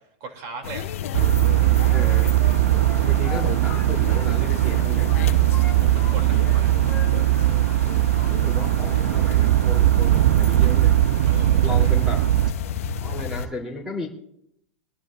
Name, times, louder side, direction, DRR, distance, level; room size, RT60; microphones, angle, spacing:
voice 1, 0.2-0.9 5.7-6.7 11.3-11.9, right 4 dB, 45° right, 4 dB, 3.1 m, -37 dB
sound 1, 0.6-13.5, left 8 dB, 80° left, 1.0 m, -34 dB
Wind instrument woodwind instrument, 1.1-4.3 4.6-6.2 6.4-7.5 7.8-8.1, left 6 dB, 10° left, 4.4 m, -41 dB
sound 2, 1.1-12.5, right 14 dB, 75° right, 0.4 m, -19 dB
voice 2, 1.9-2.4 3.0-5.1 8.3-11.0 11.6-12.2 12.5-12.6 13.0-14.1, left 3 dB, 5° right, 0 dB, 3.4 m, -34 dB
23.5 x 12.5 x 2.6 m, 0.76 s
hypercardioid pair, 130°, 8 cm